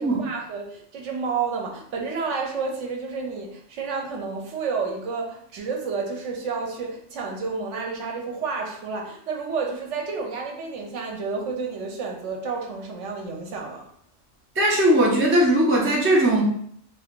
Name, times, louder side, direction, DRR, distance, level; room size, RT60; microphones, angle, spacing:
voice 1, 0.0-13.8, right 4 dB, 75° right, 1 dB, 1.0 m, -30 dB
voice 2, 14.6-16.4, right 1 dB, 20° right, -3 dB, 0.3 m, -19 dB
2.7 x 2.3 x 3.6 m, 0.67 s
omnidirectional pair, 1.3 m